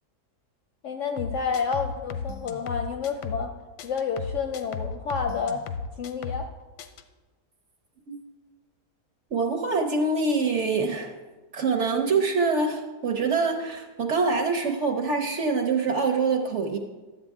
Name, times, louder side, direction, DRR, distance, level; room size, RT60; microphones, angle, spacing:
voice 1, 0.8-3.5 3.8-5.7 6.0-6.5, left 5 dB, 65° left, 5 dB, 0.8 m, -29 dB
sound 1, 1.2-3.5 3.8-6.5 6.8-7.0, left 5 dB, 90° left, 1.2 m, -35 dB
voice 2, 9.3-11.1 11.5-16.8, right 4 dB, 55° right, 4 dB, 0.9 m, -25 dB
11.5 x 7.9 x 3.5 m, 1.2 s
omnidirectional pair, 1.7 m